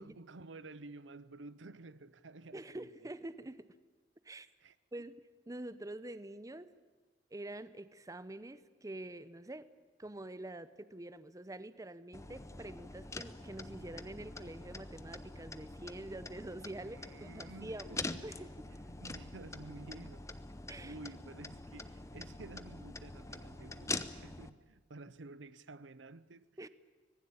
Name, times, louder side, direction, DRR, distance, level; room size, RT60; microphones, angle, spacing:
voice 1, 0.0-3.1 4.6-4.8 16.8-18.4 18.7-20.3 20.8-26.4, right 2 dB, 85° right, 0.8 m, -52 dB
voice 2, 2.5-3.7 4.2-4.5 4.9-5.1 5.5-6.7 7.3-9.7 10.0-18.5 20.7-20.9 26.6-26.7, right 1 dB, 20° right, 0.7 m, -46 dB
sound 1, 12.1-24.5, left 3 dB, 15° left, 0.8 m, -45 dB
25.0 x 19.5 x 8.7 m
head